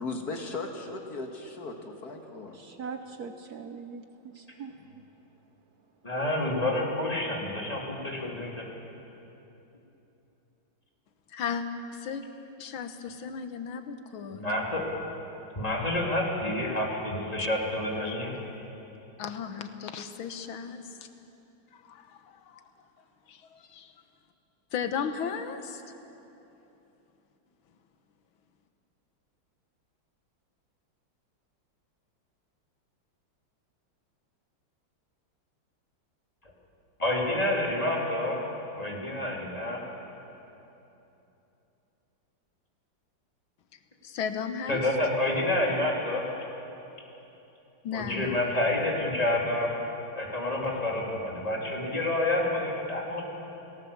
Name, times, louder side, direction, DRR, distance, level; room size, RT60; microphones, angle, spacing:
voice 1, 0.0-2.6 4.9-5.0, left 3 dB, 50° left, 3 dB, 2.2 m, -37 dB
voice 2, 2.5-4.7, right 5 dB, 60° right, 7 dB, 1.2 m, -41 dB
voice 3, 6.0-8.6 14.3-14.8 15.6-18.3 37.0-38.5 38.8-39.8 44.7-46.2 47.9-49.7 50.2-53.2, left 1 dB, 20° left, -2 dB, 3.5 m, -28 dB
voice 4, 11.3-11.7 11.9-12.2 12.6-14.4 17.4-17.5 18.0-18.2 19.2-21.0 21.7-22.7 23.3-24.0 24.7-25.9 44.0-44.8 47.8-48.4, left 7 dB, 85° left, 8 dB, 1.9 m, -35 dB
29.5 x 18.0 x 7.3 m, 3.0 s
omnidirectional pair, 2.2 m